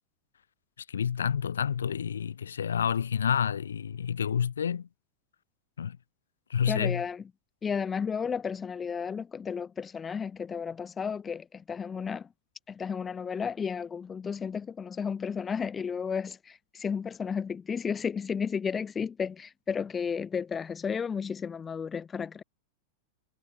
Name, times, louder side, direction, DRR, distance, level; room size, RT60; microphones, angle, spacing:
voice 1, 0.9-4.9 5.8-6.0 6.5-7.0, left 7 dB, 75° left, 1.9 m, -29 dB
voice 2, 6.7-7.2 7.6-12.3 12.7-22.4, left 6 dB, 20° left, 3.6 m, -33 dB
figure-of-eight pair, 95°, 0 cm